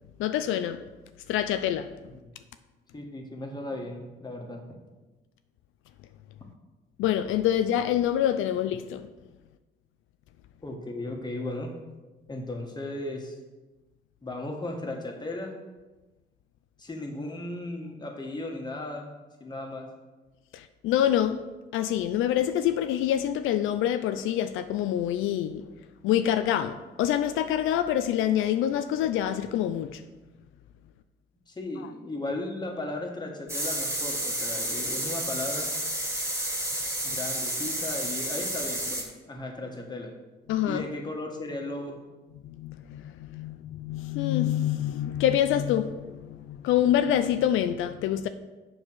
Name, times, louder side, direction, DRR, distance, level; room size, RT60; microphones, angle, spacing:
voice 1, 0.2-0.8 1.3-1.9 7.0-9.1 20.5-21.4 21.7-25.6 26.0-30.0 40.5-40.8 42.4-48.3, left 11 dB, 90° left, 0.5 m, -26 dB
voice 2, 2.9-4.6 10.6-11.8 12.3-13.3 14.2-15.5 16.8-19.1 19.4-19.9 31.5-35.7 37.0-40.1 40.7-42.0, left 2 dB, 20° left, 1.7 m, -36 dB
sound 1, 33.5-39.0, right 1 dB, 10° right, 2.3 m, -31 dB
7.3 x 4.7 x 6.3 m
cardioid pair, 90°, 20 cm